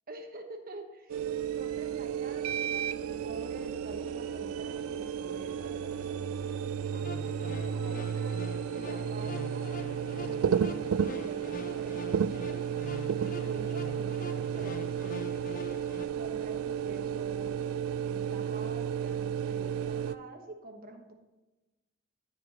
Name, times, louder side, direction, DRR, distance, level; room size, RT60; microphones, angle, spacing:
voice 1, 0.1-1.3 1.5-6.3 7.7-9.7 10.2-10.8 11.1-12.6 13.4-15.3 16.1-17.7 18.0-21.1, right 2 dB, 45° right, 4 dB, 1.2 m, -47 dB
sound 1, 1.1-20.1, right 8 dB, 90° right, 0.4 m, -33 dB
sound 2, 6.8-16.1, left 3 dB, 40° left, 0.5 m, -45 dB
12.5 x 4.9 x 4.0 m, 1.1 s
head